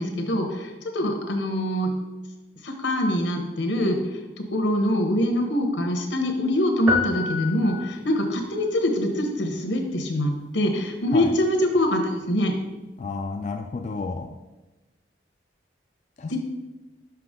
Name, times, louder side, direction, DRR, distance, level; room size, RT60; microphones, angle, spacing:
voice 1, 0.0-1.9 2.6-4.0 4.4-12.5 16.3-16.4, left 1 dB, 85° left, 4 dB, 1.1 m, -24 dB
sound 1, 6.9-8.3, left 4 dB, 5° right, 0.7 m, -28 dB
voice 2, 13.0-14.3 16.2-16.4, left 4 dB, 40° left, 4 dB, 0.3 m, -31 dB
5.9 x 5.8 x 3.7 m, 1.1 s
head